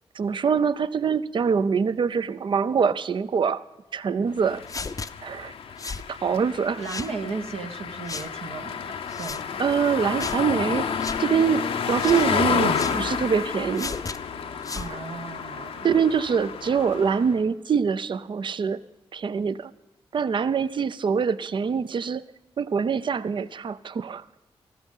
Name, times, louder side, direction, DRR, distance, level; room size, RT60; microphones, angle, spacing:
voice 1, 0.1-3.6 3.9-4.6 5.2-5.5 6.1-6.8 9.6-10.9 11.2-13.9 14.9-15.0 15.8-18.8 19.1-19.7 20.1-22.2 22.6-24.2, right 6 dB, 55° right, 16 dB, 0.5 m, -24 dB
sound 1, 4.4-17.4, left 6 dB, 75° left, 0.7 m, -30 dB
sound 2, 4.7-5.1 5.8-6.1 6.8-7.1 8.1-8.3 9.1-9.4 10.2-10.4 11.0-11.2 12.0-12.3 12.7-13.0 13.8-14.2 14.6-14.9, left 4 dB, 35° left, 0.6 m, -34 dB
voice 2, 6.8-9.5 14.7-15.9, right 4 dB, 75° right, 3 dB, 1.1 m, -35 dB
14.0 x 12.5 x 5.5 m, 1.1 s
supercardioid pair, 45°, 10 cm